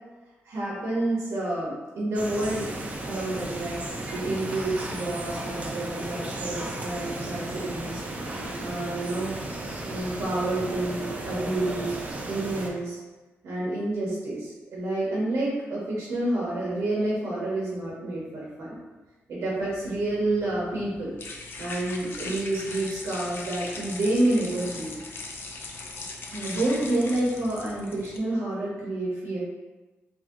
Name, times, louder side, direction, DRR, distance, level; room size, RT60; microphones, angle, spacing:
voice 1, 0.5-2.7 3.1-3.8 4.1-8.0 8.6-9.3 9.9-12.0 12.3-13.0 13.4-18.7 19.3-21.1 21.6-24.9 26.3-29.4, right 1 dB, 75° right, -6 dB, 1.0 m, -29 dB
sound 1, 2.1-12.7, right 2 dB, 30° right, 0.5 m, -34 dB
sound 2, 19.6-28.2, left 3 dB, 55° left, 0.4 m, -40 dB
3.0 x 2.8 x 3.6 m, 1.2 s
wide cardioid pair, 135°, 5 cm